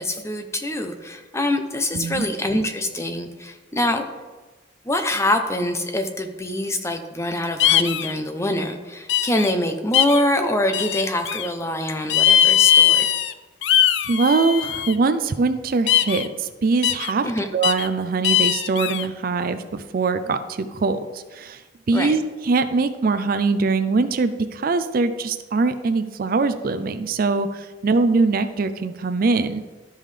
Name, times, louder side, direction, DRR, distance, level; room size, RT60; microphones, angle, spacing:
voice 1, 0.0-4.1 4.9-13.1 17.2-17.5 21.9-22.2, left 1 dB, 15° left, 6 dB, 0.6 m, -24 dB
voice 2, 1.9-2.3 14.1-17.3 17.5-21.6 21.9-29.6, right 4 dB, 45° right, 10 dB, 0.4 m, -22 dB
sound 1, 7.6-8.1 9.1-9.5 9.9-10.2 10.7-11.5 12.1-13.3 13.6-14.9 15.9-16.3 16.8-17.1 17.6-17.9 18.2-19.0, left 10 dB, 60° left, 0.4 m, -19 dB
12.5 x 5.4 x 3.3 m, 1.3 s
head